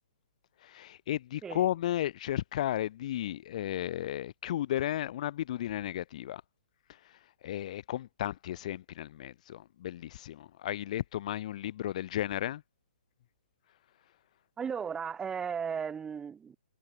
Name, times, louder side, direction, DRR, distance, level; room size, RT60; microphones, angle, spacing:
voice 1, 0.6-6.4 6.9-12.6, left 12 dB, 50° left, 5.1 m, -34 dB
voice 2, 14.6-16.6, right 7 dB, 15° right, 5.0 m, -35 dB
figure-of-eight pair, 125°, 5 cm